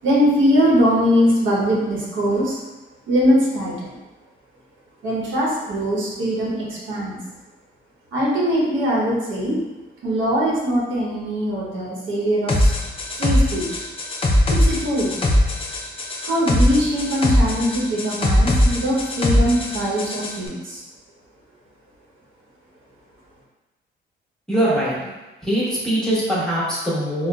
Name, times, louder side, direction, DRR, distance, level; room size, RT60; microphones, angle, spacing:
voice 1, 0.0-2.6 3.1-3.9 5.0-7.2 8.1-9.6 10.0-12.7 13.2-13.8 14.5-15.1 16.2-20.8, equal, 75° right, -5 dB, 0.9 m, -21 dB
sound 1, 12.5-20.4, left 1 dB, 25° left, 0.5 m, -20 dB
voice 2, 24.5-25.1 25.4-27.3, right 1 dB, 5° left, -9 dB, 1.1 m, -22 dB
3.8 x 2.0 x 2.3 m, 1.1 s
cardioid pair, 90°, 20 cm